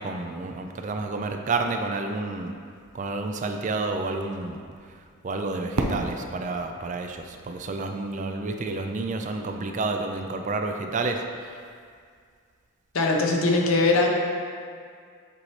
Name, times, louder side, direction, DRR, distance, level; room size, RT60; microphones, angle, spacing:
voice 1, 0.0-2.5 2.9-4.6 5.2-11.2, right 3 dB, 35° right, 5 dB, 0.3 m, -30 dB
Fireworks, 5.8-8.6, right 2 dB, 90° right, 0.6 m, -33 dB
voice 2, 12.9-14.1, left 3 dB, 75° left, 0 dB, 0.8 m, -21 dB
7.6 x 4.2 x 3.2 m, 2.1 s
head